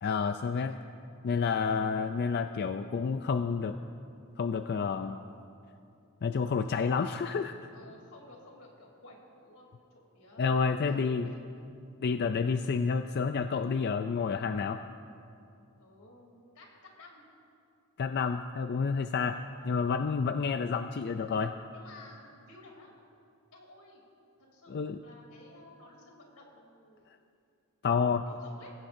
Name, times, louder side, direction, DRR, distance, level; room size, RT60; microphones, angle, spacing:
voice 1, 0.0-0.8 1.2-3.8 4.4-5.2 6.2-7.5 10.4-11.3 12.0-14.8 18.0-19.4 19.6-21.5 24.7-25.0 27.8-28.3, left 5 dB, 50° left, 8 dB, 0.4 m, -29 dB
voice 2, 7.7-11.6 15.8-17.2 19.3-19.8 21.7-23.0 23.5-24.0 24.4-24.7 25.0-27.2 28.3-28.7, left 2 dB, 80° left, -1 dB, 3.1 m, -54 dB
21.5 x 15.5 x 2.7 m, 2.5 s
head